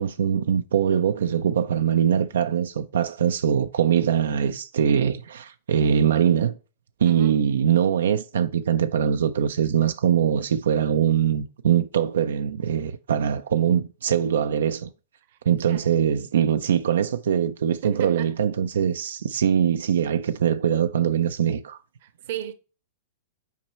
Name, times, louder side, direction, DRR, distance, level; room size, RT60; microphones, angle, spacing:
voice 1, 0.0-6.5 7.0-14.9 15.5-21.8, right 8 dB, 75° right, 0.4 m, -22 dB
voice 2, 7.0-7.4 15.3-15.4 15.7-15.9 17.8-18.3 22.0-22.5, right 10 dB, 60° right, 0.9 m, -35 dB
6.0 x 4.5 x 4.2 m
hypercardioid pair, 110°, 0 cm